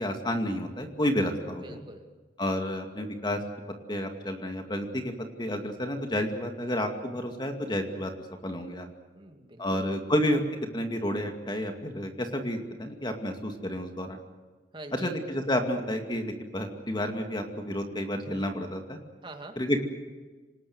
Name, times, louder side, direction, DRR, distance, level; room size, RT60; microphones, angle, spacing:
voice 1, 0.0-1.8 2.4-3.4 3.9-8.1 8.4-8.9 9.6-10.4 10.7-14.2 14.9-19.0 19.6-19.9, left 1 dB, 25° left, 5 dB, 2.3 m, -30 dB
voice 2, 1.6-2.1 9.1-10.0 14.7-15.2 19.2-19.6, right 2 dB, 30° right, 5 dB, 2.4 m, -45 dB
26.0 x 19.5 x 8.0 m, 1.3 s
head